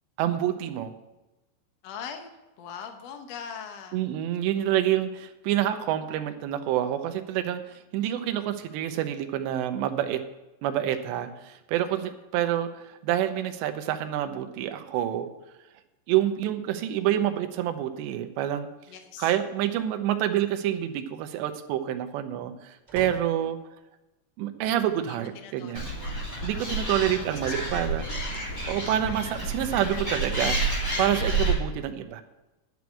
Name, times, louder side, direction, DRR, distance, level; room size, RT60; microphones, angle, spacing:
voice 1, 0.2-0.9 3.9-7.6 7.9-10.2 10.6-15.3 16.1-18.7 19.2-23.6 24.4-25.9 26.4-28.1 28.4-32.2, right 11 dB, 85° right, 8 dB, 3.0 m, -27 dB
voice 2, 1.8-4.5 18.9-19.3 25.0-27.9, left 7 dB, 80° left, 5 dB, 1.4 m, -43 dB
sound 1, 22.9-23.5 24.6-25.1 25.8-25.9 27.1-27.9, equal, 10° right, 3.8 m, -47 dB
Animal, 25.7-31.5, right 2 dB, 20° left, 2.6 m, -29 dB
11.0 x 6.2 x 8.3 m, 1.0 s
omnidirectional pair, 4.9 m